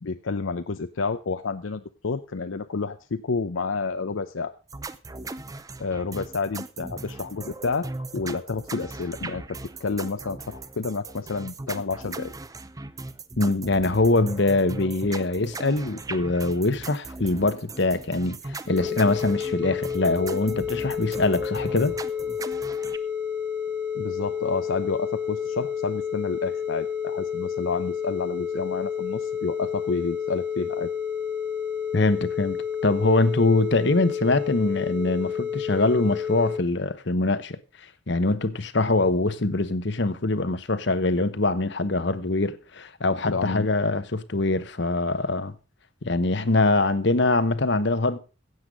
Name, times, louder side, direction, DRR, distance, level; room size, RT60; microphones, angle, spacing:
voice 1, 0.0-4.5 5.8-12.3 23.9-30.9 43.2-43.7, left 4 dB, 75° left, 0.6 m, -30 dB
sound 1, 4.7-23.0, right 3 dB, 15° right, 0.6 m, -38 dB
voice 2, 13.4-22.0 31.9-32.6 32.8-37.6 38.1-45.5 46.0-48.2, left 2 dB, 55° left, 1.0 m, -23 dB
sound 2, 18.7-36.6, left 7 dB, 45° right, 2.7 m, -30 dB
16.0 x 8.0 x 5.1 m
head